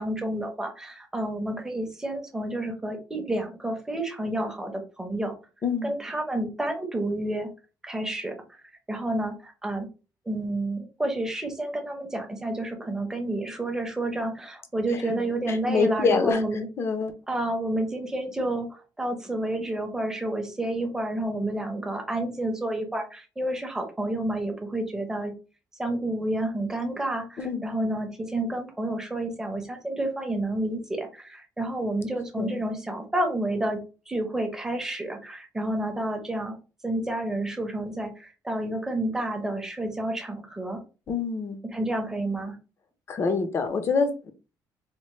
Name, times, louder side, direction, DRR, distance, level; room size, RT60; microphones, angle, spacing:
voice 1, 0.0-5.4 5.8-7.5 7.8-8.6 8.9-9.9 10.3-16.7 17.3-25.3 25.8-33.8 34.1-36.6 36.8-40.8 41.6-42.6, right 1 dB, 5° right, 3 dB, 0.7 m, -30 dB
voice 2, 5.6-5.9 14.9-16.4 16.8-17.1 27.4-27.6 32.4-32.6 41.1-41.6 43.1-44.3, left 4 dB, 35° left, 8 dB, 0.5 m, -26 dB
4.3 x 2.1 x 3.0 m, 0.33 s
cardioid pair, 175°, 8 cm